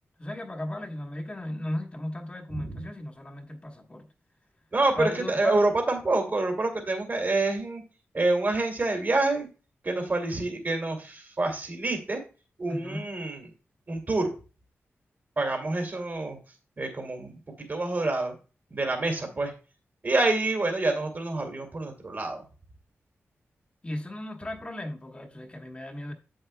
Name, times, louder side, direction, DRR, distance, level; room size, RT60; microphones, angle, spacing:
voice 1, 0.2-4.1 5.0-5.6 12.7-13.1 23.8-26.1, left 1 dB, 25° left, 1.3 m, -35 dB
voice 2, 4.7-7.8 8.1-9.5 9.8-12.2 12.6-13.4 13.9-14.3 15.4-16.4 16.8-18.3 18.7-19.5 20.0-22.4, right 2 dB, 40° right, 2.5 m, -27 dB
8.1 x 7.8 x 2.3 m
wide cardioid pair, 95°, 5 cm